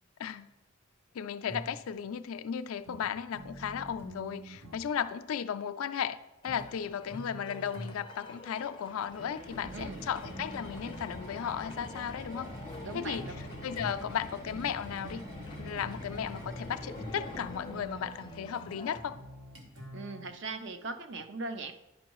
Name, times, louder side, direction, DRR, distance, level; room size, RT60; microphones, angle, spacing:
voice 1, 1.1-6.2 6.4-12.5 12.9-13.3 13.6-15.3 15.6-19.2, left 8 dB, 85° left, 12 dB, 0.4 m, -35 dB
sound 1, 1.5-1.9 2.8-4.9 6.4-8.2 9.5-11.2 12.5-20.3, equal, 75° right, 1.3 m, -46 dB
sound 2, 6.4-19.0, left 3 dB, 25° left, 0.4 m, -50 dB
sound 3, 9.1-18.2, left 1 dB, 35° right, 1.7 m, -45 dB
voice 2, 9.7-10.1 12.8-13.4 19.9-21.7, right 3 dB, 55° right, 8 dB, 0.5 m, -39 dB
10.5 x 5.4 x 3.0 m, 0.98 s
head